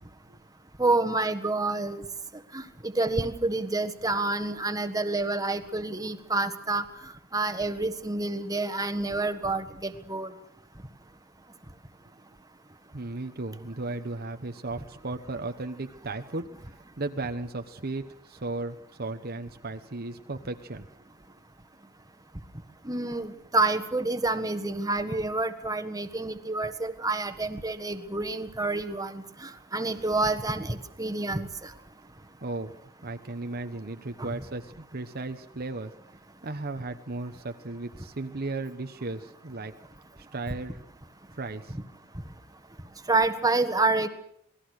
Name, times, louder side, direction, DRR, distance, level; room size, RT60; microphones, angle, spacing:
voice 1, 0.8-2.0 2.5-6.8 7.3-10.3 22.8-31.7 34.2-34.3 43.1-44.1, right 2 dB, 15° right, 9 dB, 1.5 m, -28 dB
voice 2, 12.9-20.9 32.4-35.9 36.4-39.7 40.2-40.8 41.3-41.8, right 2 dB, 45° right, 7 dB, 1.1 m, -35 dB
27.5 x 20.0 x 6.5 m, 0.71 s
head